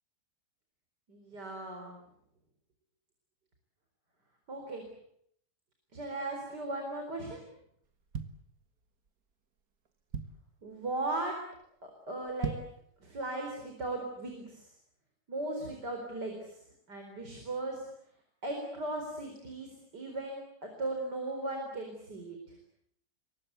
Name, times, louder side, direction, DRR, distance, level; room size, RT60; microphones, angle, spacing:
voice 1, 1.1-2.0 4.5-4.8 5.9-7.4 10.6-11.4 11.8-12.6 13.0-14.7 15.3-16.5 16.9-17.8 18.4-22.4, right 2 dB, 85° right, 3 dB, 5.0 m, -37 dB
sound 1, 7.8-9.1 9.6-9.7 9.9-10.6 11.1-11.3 11.6-11.7 12.2-12.9 13.3-13.4, right 6 dB, 60° right, 1.9 m, -38 dB
26.5 x 23.5 x 8.1 m, 0.71 s
omnidirectional pair, 1.8 m